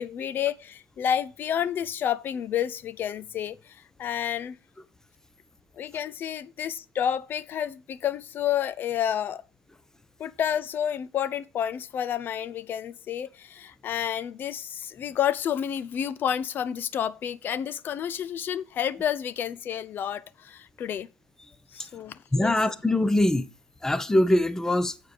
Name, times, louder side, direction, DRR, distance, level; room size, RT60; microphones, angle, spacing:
voice 1, 0.0-4.6 5.8-9.4 10.2-21.1 21.7-22.5, left 9 dB, 45° left, 0.6 m, -30 dB
voice 2, 22.3-23.5 23.8-24.9, left 1 dB, 10° left, 0.9 m, -22 dB
7.8 x 4.6 x 6.8 m
hypercardioid pair, 75°, 5 cm